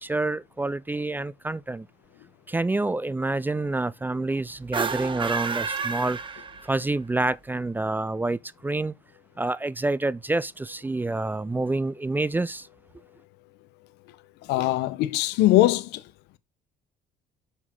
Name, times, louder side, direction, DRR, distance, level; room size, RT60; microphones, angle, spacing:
voice 1, 0.0-1.9 2.5-6.2 6.6-8.9 9.4-12.7, right 2 dB, 10° right, 0.3 m, -27 dB
sound 1, 4.6-7.0, right 5 dB, 30° right, 1.0 m, -30 dB
voice 2, 14.5-16.0, left 15 dB, 90° left, 0.8 m, -21 dB
7.4 x 6.1 x 3.7 m
cardioid pair, 110°, 17 cm